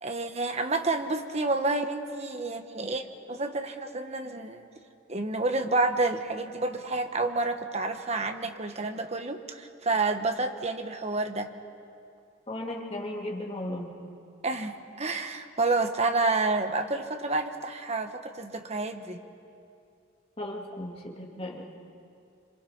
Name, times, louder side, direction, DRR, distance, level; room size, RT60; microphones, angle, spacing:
voice 1, 0.0-4.6 5.1-11.5 14.4-19.2, right 3 dB, 30° right, 6 dB, 1.2 m, -29 dB
voice 2, 12.5-13.9 20.4-21.7, left 1 dB, 30° left, -1 dB, 2.6 m, -36 dB
27.0 x 25.5 x 5.8 m, 2.5 s
head